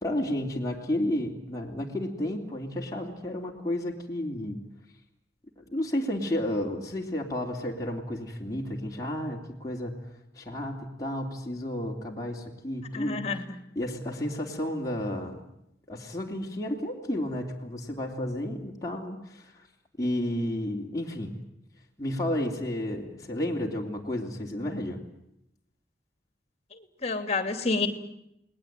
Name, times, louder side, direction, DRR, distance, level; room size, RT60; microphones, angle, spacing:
voice 1, 0.0-4.6 5.6-9.9 10.3-13.3 13.7-15.4 15.9-19.6 20.0-21.3 22.0-25.0, left 1 dB, 20° left, -2 dB, 3.1 m, -32 dB
voice 2, 12.9-13.4 26.7-27.9, left 4 dB, 35° left, 8 dB, 2.9 m, -29 dB
29.5 x 20.5 x 9.2 m, 0.81 s
head